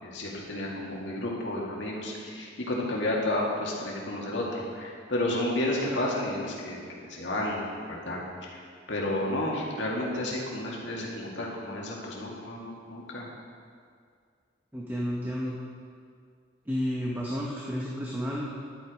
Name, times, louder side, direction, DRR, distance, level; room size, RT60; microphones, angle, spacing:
voice 1, 0.0-8.6 8.9-13.3, left 1 dB, 70° left, -3 dB, 2.1 m, -31 dB
voice 2, 14.7-15.5 16.7-18.5, equal, 10° right, -4 dB, 0.9 m, -31 dB
11.5 x 8.1 x 5.0 m, 2.1 s
head